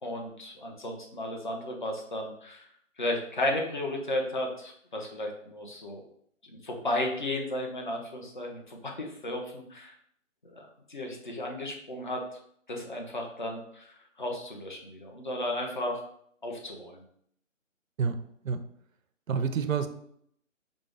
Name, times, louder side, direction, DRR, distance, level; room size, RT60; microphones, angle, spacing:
voice 1, 0.0-2.7 3.0-6.0 6.4-9.9 10.4-12.2 12.7-16.0 16.4-17.0, left 1 dB, 40° left, 1 dB, 0.6 m, -34 dB
voice 2, 19.3-19.9, right 6 dB, 90° right, 9 dB, 0.6 m, -28 dB
5.1 x 2.0 x 3.3 m, 0.67 s
hypercardioid pair, 170°, 39 cm